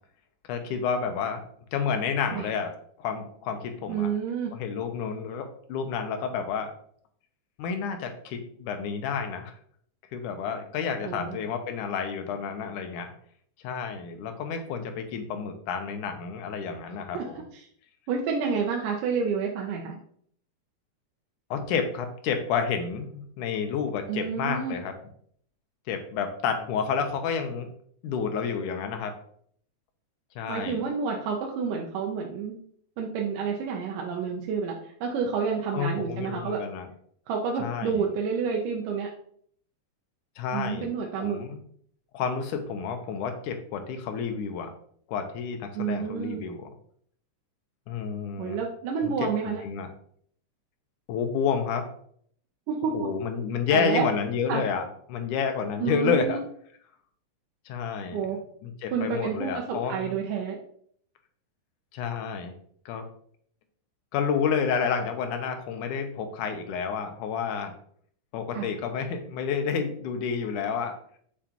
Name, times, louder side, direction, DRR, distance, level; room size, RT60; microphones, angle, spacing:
voice 1, 0.5-1.4 1.7-2.7 3.0-4.1 4.5-6.7 7.6-9.5 10.1-13.1 13.6-17.4 21.5-24.9 25.9-27.7 28.0-29.1 30.4-30.8 35.7-36.9 37.6-38.1 40.4-40.9 41.2-41.6 42.1-44.7 45.1-46.7 47.9-48.6 49.0-49.1 49.6-49.9 51.1-51.9 52.9-54.8 55.1-56.4 57.7-58.2 58.6-60.1 61.9-62.5 62.9-63.0 64.1-67.7 68.3-70.9, left 6 dB, 75° left, 6 dB, 2.2 m, -30 dB
voice 2, 3.9-4.5 11.0-11.4 17.1-17.3 17.5-17.7 18.1-20.0 24.1-24.8 30.5-32.6 33.0-36.6 37.3-39.1 40.5-41.4 45.7-46.4 48.4-49.6 52.7-53.1 53.7-54.1 54.5-54.6 55.8-56.4 58.1-58.4 58.9-60.6 68.5-68.7, right 6 dB, 80° right, 0 dB, 2.3 m, -29 dB
7.2 x 4.8 x 2.9 m, 0.62 s
omnidirectional pair, 3.8 m